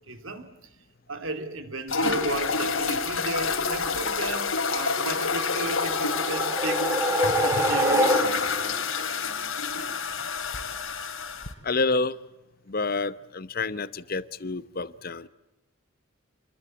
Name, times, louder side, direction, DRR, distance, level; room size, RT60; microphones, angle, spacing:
voice 1, 0.1-0.5 1.1-8.3, right 2 dB, 80° right, 8 dB, 2.8 m, -34 dB
sound 1, 1.9-11.5, left 4 dB, 85° left, 2.7 m, -28 dB
sound 2, 5.6-8.7, right 1 dB, 15° right, 2.5 m, -25 dB
voice 2, 11.6-12.2 12.7-15.3, left 3 dB, 45° left, 15 dB, 0.9 m, -28 dB
28.0 x 21.0 x 8.4 m, 1.0 s
head